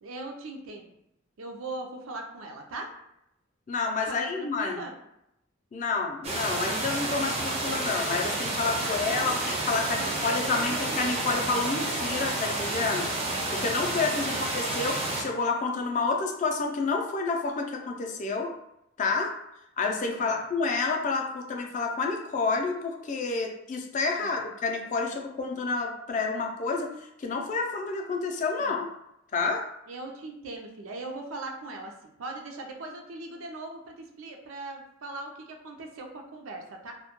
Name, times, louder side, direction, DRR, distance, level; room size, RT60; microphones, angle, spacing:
voice 1, 0.0-0.9 1.4-2.9 4.1-4.9 8.8-9.4 9.9-11.1 14.3-14.5 20.2-20.4 24.2-24.4 28.6-28.8 29.9-36.9, right 2 dB, 90° right, 3 dB, 0.4 m, -40 dB
voice 2, 3.7-4.8 5.7-13.1 13.5-18.5 19.0-19.3 19.8-26.9 27.2-28.9 29.3-29.6, left 4 dB, 40° left, 2 dB, 0.3 m, -29 dB
sound 1, 6.2-15.2, right 2 dB, 30° right, 0.4 m, -30 dB
2.1 x 2.1 x 2.9 m, 0.82 s
head